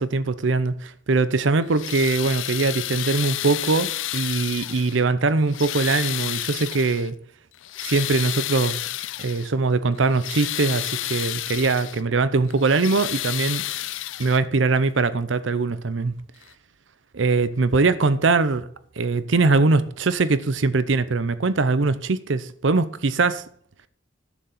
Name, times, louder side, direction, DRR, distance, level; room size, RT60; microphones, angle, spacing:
voice 1, 0.0-7.1 7.8-8.9 9.2-13.6 14.2-16.1 17.1-18.6 19.0-23.4, right 3 dB, 70° right, 0.7 m, -22 dB
sound 1, 1.6-5.1 5.5-7.1 7.5-9.5 10.0-12.0 12.5-14.6 15.7-15.8 16.4-16.5, left 14 dB, 75° left, 0.5 m, -31 dB
11.5 x 6.8 x 7.2 m
head